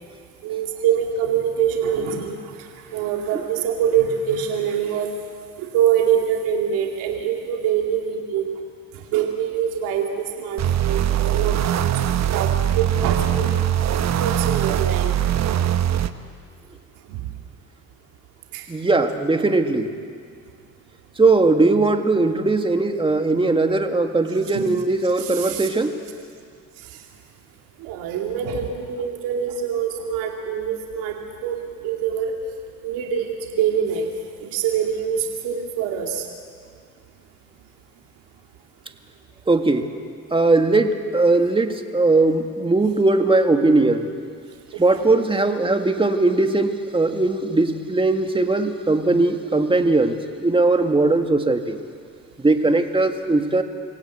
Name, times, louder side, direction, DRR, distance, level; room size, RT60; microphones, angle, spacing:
voice 1, 0.4-5.1 5.6-8.6 9.1-12.0 12.3-13.7 14.2-15.1 17.1-17.2 18.5-18.7 24.5-24.7 25.2-25.7 26.8-27.0 27.8-31.2 31.4-32.3 32.8-34.1 34.4-36.2 44.7-44.8 45.1-45.2, right 8 dB, 90° right, 1 dB, 2.3 m, -24 dB
sound 1, 10.6-16.1, right 11 dB, 55° right, 1.1 m, -21 dB
voice 2, 18.7-19.9 21.2-25.9 39.5-39.9 40.3-44.1 44.7-51.8 52.4-53.6, right 2 dB, 15° right, 6 dB, 2.0 m, -19 dB
27.0 x 17.0 x 8.2 m, 2.2 s
supercardioid pair, 80°, 33 cm